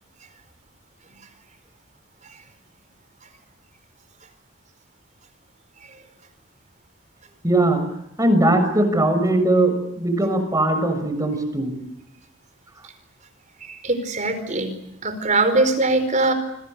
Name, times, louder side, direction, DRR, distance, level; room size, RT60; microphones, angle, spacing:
voice 1, 7.4-7.8 8.2-11.8, right 1 dB, 15° right, 8 dB, 6.3 m, -20 dB
voice 2, 13.6-16.3, right 2 dB, 40° right, 9 dB, 4.8 m, -22 dB
27.0 x 25.5 x 6.8 m, 0.82 s
head